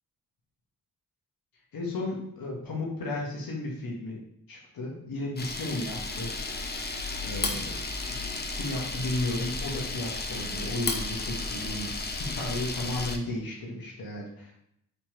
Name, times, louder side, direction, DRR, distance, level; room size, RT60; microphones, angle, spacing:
voice 1, 1.7-4.2 4.5-6.3 7.2-7.8 8.5-11.9 12.2-14.5, left 2 dB, 70° left, -2 dB, 1.3 m, -34 dB
Camera, 5.4-13.2, left 3 dB, 25° left, 0.6 m, -33 dB
3.4 x 3.0 x 4.4 m, 0.76 s
cardioid pair, 60°, 37 cm